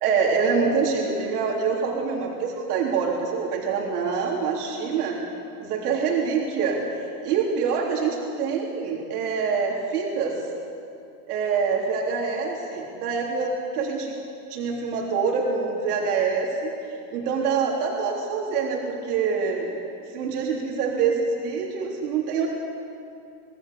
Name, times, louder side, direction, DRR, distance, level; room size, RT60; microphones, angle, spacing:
voice 1, 0.0-5.2 5.6-6.8 7.2-10.3 11.3-14.1 14.5-16.7 17.1-19.8 20.1-22.5, right 5 dB, 65° right, -1 dB, 3.7 m, -25 dB
25.0 x 17.0 x 6.9 m, 2.5 s
supercardioid pair, 160°, 48 cm